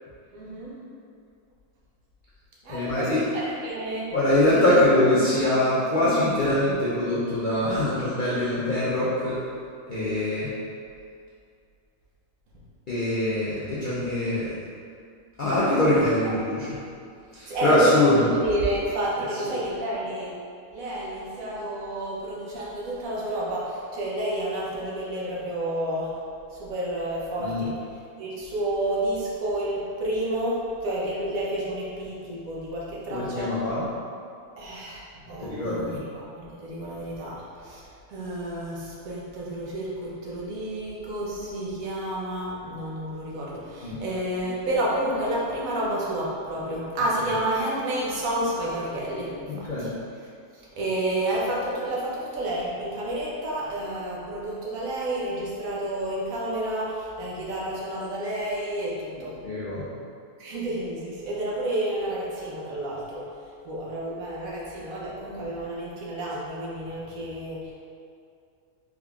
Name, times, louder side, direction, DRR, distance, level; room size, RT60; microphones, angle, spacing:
voice 1, 0.3-0.8 2.6-4.1 4.5-4.6 5.3-5.5 16.2-16.3 17.5-20.4 20.7-26.2 26.5-27.7 28.2-33.5 34.6-35.0 35.3-49.9 50.5-59.4 60.4-63.3 63.6-67.7, right 1 dB, 70° right, -5 dB, 1.1 m, -30 dB
voice 2, 2.7-3.2 4.1-9.4 9.9-10.5 12.9-14.6 15.4-16.8 17.3-18.3 19.3-19.4 27.4-27.7 33.1-33.8 35.4-36.0 43.8-44.0 49.5-49.9 59.4-59.9, left 1 dB, 60° left, -10 dB, 0.5 m, -23 dB
3.7 x 3.5 x 2.3 m, 2.4 s
omnidirectional pair, 1.5 m